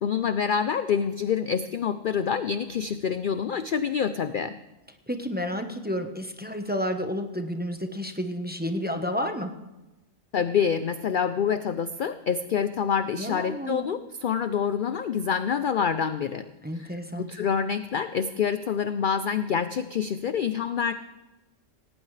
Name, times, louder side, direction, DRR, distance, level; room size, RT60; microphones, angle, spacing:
voice 1, 0.0-4.5 10.3-16.5 16.7-16.9 17.2-20.9, left 7 dB, 55° left, 11 dB, 0.6 m, -27 dB
voice 2, 5.1-9.5 13.2-13.9 16.6-17.3, equal, 10° right, 5 dB, 0.9 m, -31 dB
18.0 x 18.0 x 3.3 m, 1.0 s
omnidirectional pair, 1.3 m